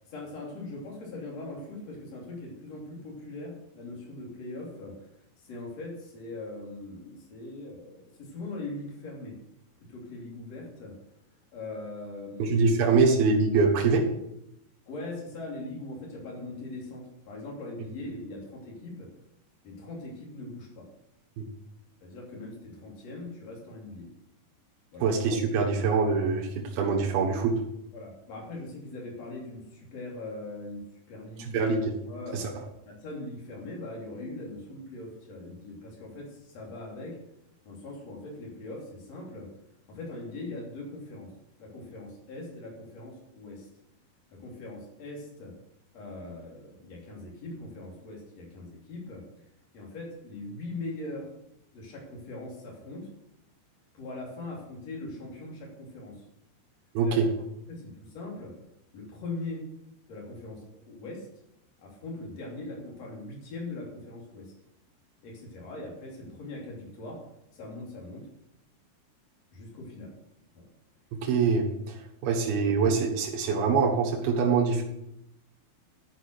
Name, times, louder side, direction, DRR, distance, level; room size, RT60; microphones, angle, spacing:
voice 1, 0.1-5.1 5.4-9.4 9.9-11.0 11.5-12.6 14.9-19.1 19.6-20.9 22.0-24.1 24.9-25.1 27.9-31.6 32.1-32.5 32.9-37.2 37.7-39.5 39.9-41.3 41.6-43.7 44.3-45.6 45.9-49.3 49.7-51.3 51.7-53.1 53.9-56.2 57.0-57.2 57.7-58.6 58.9-59.7 60.1-61.3 61.8-64.5 65.2-67.3 67.5-68.3 69.5-70.2 70.5-70.7 72.3-72.4, left 2 dB, 45° left, -2 dB, 3.8 m, -41 dB
voice 2, 12.4-14.1 21.4-21.5 25.0-27.6 31.5-31.9 32.3-32.4 56.9-57.3 71.2-71.7 72.2-74.8, right 4 dB, 80° right, -1 dB, 3.3 m, -24 dB
12.0 x 6.1 x 6.2 m, 0.80 s
omnidirectional pair, 4.3 m